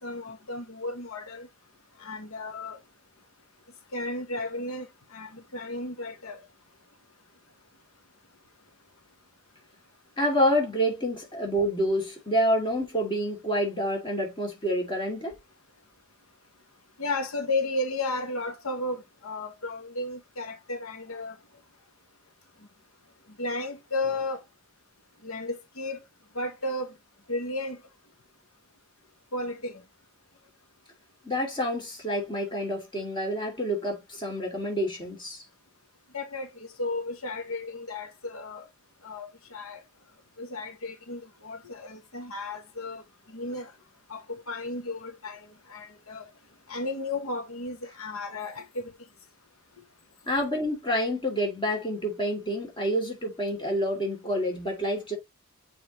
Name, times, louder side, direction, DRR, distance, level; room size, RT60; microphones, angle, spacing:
voice 1, 0.0-1.5 2.0-2.8 3.9-4.9 5.1-6.4 17.0-21.3 23.4-24.4 25.2-26.0 26.3-26.9 27.3-27.8 29.3-29.8 36.1-38.7 39.0-39.8 40.4-43.0 43.3-43.7 44.1-46.2 46.7-48.9, left 2 dB, 75° left, 1.1 m, -34 dB
voice 2, 10.2-15.3 31.2-35.4 50.3-55.2, equal, 20° left, 2.4 m, -28 dB
7.0 x 4.8 x 3.0 m
head